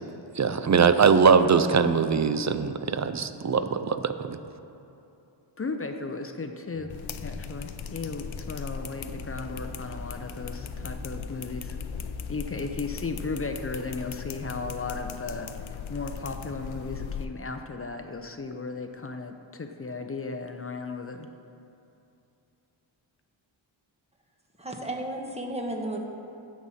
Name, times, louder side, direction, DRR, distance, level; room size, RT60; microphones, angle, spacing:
voice 1, 0.4-4.4, right 6 dB, 40° right, 10 dB, 0.4 m, -22 dB
voice 2, 5.6-6.9 7.2-11.8 12.3-21.3, left 3 dB, 30° left, 6 dB, 0.5 m, -35 dB
sound 1, 6.7-12.1, left 1 dB, 85° right, 1.7 m, -45 dB
sound 2, 6.9-17.2, left 7 dB, 80° left, 0.6 m, -38 dB
voice 3, 24.6-26.0, right 1 dB, 15° right, 1 dB, 1.1 m, -33 dB
15.5 x 7.3 x 4.1 m, 2.8 s
wide cardioid pair, 155°, 46 cm